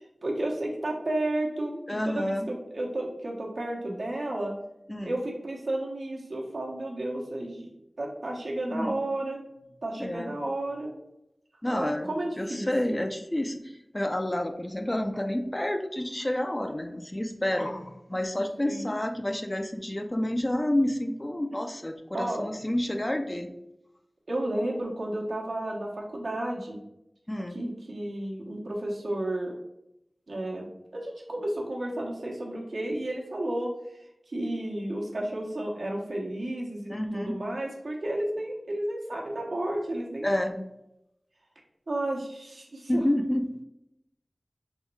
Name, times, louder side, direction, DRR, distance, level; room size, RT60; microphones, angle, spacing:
voice 1, 0.2-4.5 5.0-7.7 8.0-9.4 9.8-10.9 11.7-13.0 18.7-18.9 22.1-22.5 24.3-26.8 27.5-29.6 30.3-30.7 30.9-40.3 41.9-43.0, right 1 dB, 85° right, -2 dB, 1.1 m, -32 dB
voice 2, 1.9-2.5 4.9-5.2 8.7-9.0 10.0-10.4 11.6-23.5 27.3-27.6 36.9-37.4 40.2-40.7 42.9-43.6, left 1 dB, 20° left, 5 dB, 0.4 m, -29 dB
3.6 x 3.1 x 4.6 m, 0.85 s
wide cardioid pair, 70°, 0 cm